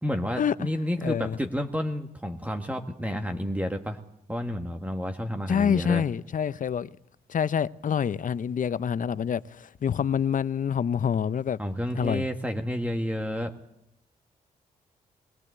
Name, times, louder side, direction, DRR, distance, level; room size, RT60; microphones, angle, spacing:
voice 1, 0.0-4.0 4.3-6.0 11.6-13.5, equal, 10° right, 1.8 m, -30 dB
voice 2, 1.0-1.4 5.5-6.9 7.3-11.6 11.9-12.3, left 8 dB, 55° left, 0.7 m, -26 dB
22.0 x 16.5 x 8.1 m
supercardioid pair, 50°, 16 cm